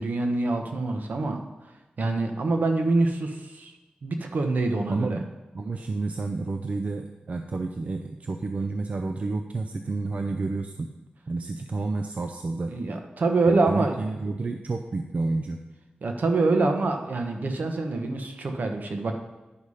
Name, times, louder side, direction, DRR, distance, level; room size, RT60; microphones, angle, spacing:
voice 1, 0.0-1.4 2.0-3.7 4.0-5.2 12.6-14.0 16.0-19.1, right 3 dB, 70° right, 4 dB, 1.1 m, -25 dB
voice 2, 4.9-5.2 5.5-10.9 11.3-12.7 13.5-15.6, right 3 dB, 50° right, 5 dB, 0.5 m, -30 dB
10.5 x 5.5 x 4.9 m, 1.1 s
wide cardioid pair, 105°, 3 cm